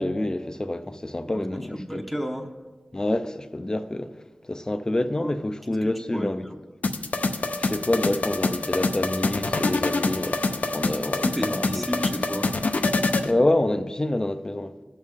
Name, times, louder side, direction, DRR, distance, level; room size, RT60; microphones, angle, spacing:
voice 1, 0.0-2.0 2.9-4.1 4.4-6.4 7.6-11.8 13.2-14.7, left 1 dB, 25° left, 0.6 m, -27 dB
voice 2, 1.3-2.5 5.2-5.3 5.7-6.6 11.2-12.5, equal, ahead, 1.0 m, -32 dB
sound 1, 6.8-13.3, left 3 dB, 75° left, 0.6 m, -26 dB
17.5 x 6.5 x 3.5 m
wide cardioid pair, 75°, 3 cm